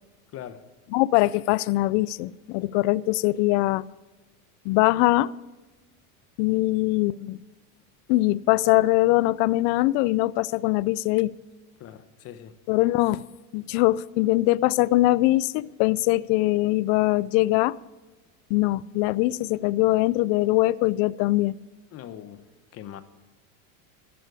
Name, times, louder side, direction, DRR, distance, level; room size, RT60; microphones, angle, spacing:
voice 1, 0.3-0.6 11.8-12.6 21.9-22.5 22.7-23.0, left 10 dB, 35° left, 0.9 m, -41 dB
voice 2, 0.9-3.8 4.7-5.3 6.4-7.4 8.1-11.3 12.7-13.3 13.5-17.7 18.5-21.6, left 18 dB, 50° left, 0.4 m, -22 dB
13.5 x 11.0 x 4.8 m
supercardioid pair, 140°, 42 cm